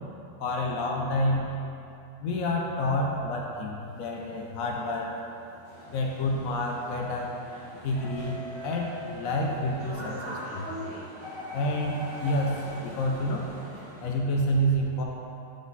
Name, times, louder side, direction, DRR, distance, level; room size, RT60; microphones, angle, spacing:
voice 1, 0.4-1.5 2.2-5.1 5.9-7.3 7.7-10.7 11.5-13.5 14.0-15.0, left 1 dB, 70° left, -1 dB, 0.8 m, -29 dB
sound 1, 3.8-14.2, equal, 75° right, 2.7 m, -41 dB
7.6 x 5.1 x 4.0 m, 2.7 s
omnidirectional pair, 2.3 m